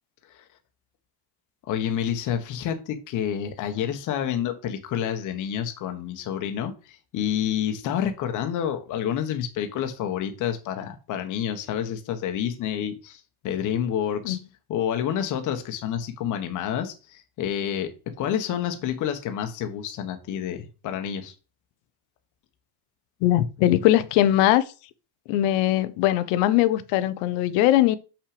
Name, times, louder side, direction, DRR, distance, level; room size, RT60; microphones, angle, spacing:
voice 1, 1.7-14.4 14.7-17.9 18.2-21.3, left 9 dB, 40° left, 1.3 m, -29 dB
voice 2, 23.2-24.6 25.3-28.0, left 13 dB, 60° left, 0.9 m, -20 dB
6.6 x 6.0 x 5.0 m
cardioid pair, 160°, 47 cm